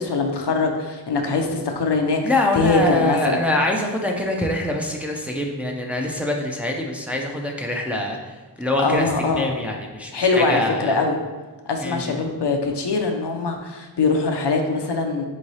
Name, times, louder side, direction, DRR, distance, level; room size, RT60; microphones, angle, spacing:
voice 1, 0.0-2.2 2.5-3.4 8.8-9.5 10.1-11.2 11.7-15.2, left 3 dB, 70° left, 3 dB, 0.6 m, -22 dB
voice 2, 2.2-8.2 8.6-11.0 11.8-12.2, left 1 dB, 5° right, 0 dB, 0.5 m, -24 dB
3.7 x 3.1 x 4.1 m, 1.3 s
wide cardioid pair, 45°, 43 cm